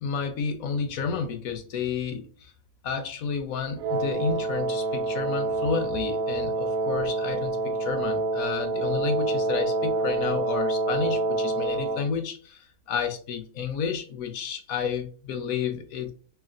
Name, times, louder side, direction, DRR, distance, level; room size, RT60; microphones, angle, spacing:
voice 1, 0.0-2.5 2.8-16.1, left 6 dB, 70° left, 8 dB, 1.0 m, -31 dB
Wind instrument woodwind instrument, 3.8-12.1, right 2 dB, 85° right, 1.1 m, -27 dB
3.2 x 2.8 x 3.7 m, 0.42 s
omnidirectional pair, 1.6 m